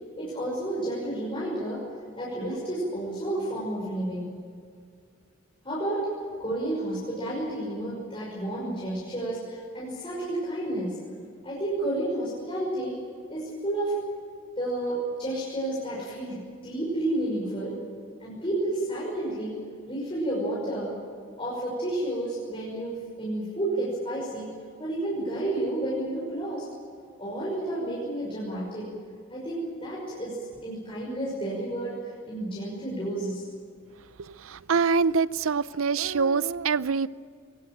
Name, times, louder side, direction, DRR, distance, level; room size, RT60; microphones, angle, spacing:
voice 1, 0.2-1.8 2.2-4.3 5.6-6.1 6.4-11.0 11.4-13.0 13.3-14.0 14.6-17.8 18.2-19.6 19.9-21.0 21.4-24.5 24.8-26.7 27.2-28.9 29.3-33.5, right 1 dB, 25° left, 5.8 m, -31 dB
voice 2, 34.3-37.1, right 5 dB, 75° right, 0.6 m, -25 dB
23.0 x 19.0 x 9.1 m
head